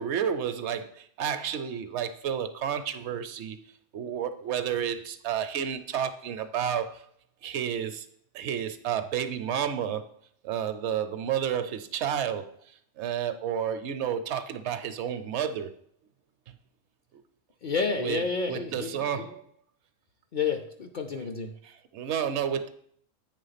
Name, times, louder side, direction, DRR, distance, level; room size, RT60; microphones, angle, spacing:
voice 1, 0.0-3.6 3.9-7.1 7.4-8.1 8.3-10.0 10.4-15.7 16.5-16.6 18.0-19.4 21.6-22.7, right 8 dB, 70° right, 11 dB, 0.8 m, -31 dB
voice 2, 17.6-19.3 20.3-21.5, left 5 dB, 55° left, 4 dB, 0.6 m, -30 dB
8.3 x 3.5 x 5.6 m, 0.64 s
omnidirectional pair, 1.3 m